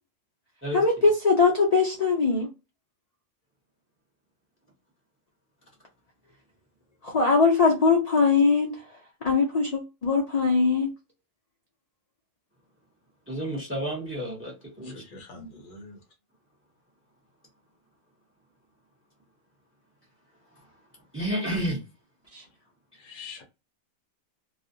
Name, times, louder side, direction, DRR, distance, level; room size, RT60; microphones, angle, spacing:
voice 1, 0.7-2.5 7.0-8.8 9.2-10.9 15.4-15.5 22.3-22.4, left 4 dB, 90° left, 0.3 m, -21 dB
voice 2, 13.3-14.9 21.1-21.8, equal, 15° right, 0.5 m, -30 dB
voice 3, 14.8-16.0 22.9-23.4, left 4 dB, 55° left, 0.6 m, -45 dB
2.4 x 2.1 x 2.5 m
omnidirectional pair, 1.4 m